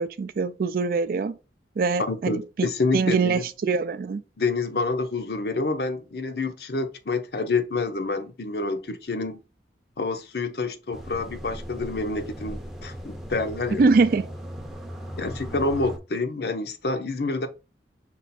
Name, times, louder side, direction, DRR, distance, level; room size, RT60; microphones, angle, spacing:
voice 1, 0.0-1.4 1.8-2.7 2.9-4.2 13.8-14.3, right 4 dB, 50° right, 0.3 m, -23 dB
voice 2, 2.1-3.4 4.4-9.4 10.0-13.9 15.2-17.5, left 3 dB, 60° left, 0.6 m, -28 dB
sound 1, 10.9-16.0, equal, ahead, 0.6 m, -38 dB
5.4 x 2.4 x 4.1 m
head